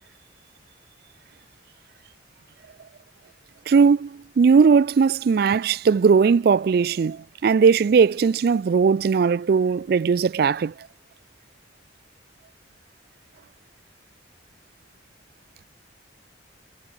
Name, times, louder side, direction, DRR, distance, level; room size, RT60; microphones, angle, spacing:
voice 1, 3.7-10.7, right 5 dB, 55° right, 0.3 m, -18 dB
head